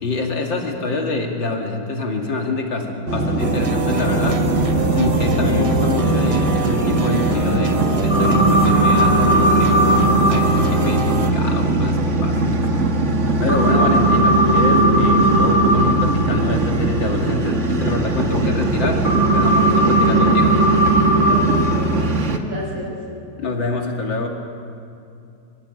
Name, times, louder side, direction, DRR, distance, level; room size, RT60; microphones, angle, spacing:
voice 1, 0.0-4.4 5.0-9.8 10.3-12.7 13.4-19.0 19.3-20.6 23.4-24.3, left 3 dB, 65° left, 1 dB, 3.0 m, -25 dB
sound 1, 3.1-22.4, right 2 dB, 40° right, 1.6 m, -21 dB
sound 2, 3.4-11.3, right 3 dB, 20° right, 0.9 m, -25 dB
sound 3, 8.1-10.2 13.5-15.8 19.0-21.4, right 2 dB, 35° left, 5.5 m, -17 dB
voice 2, 21.2-23.0, left 1 dB, 65° right, -2 dB, 6.1 m, -30 dB
27.0 x 15.0 x 9.2 m, 2.5 s
omnidirectional pair, 2.3 m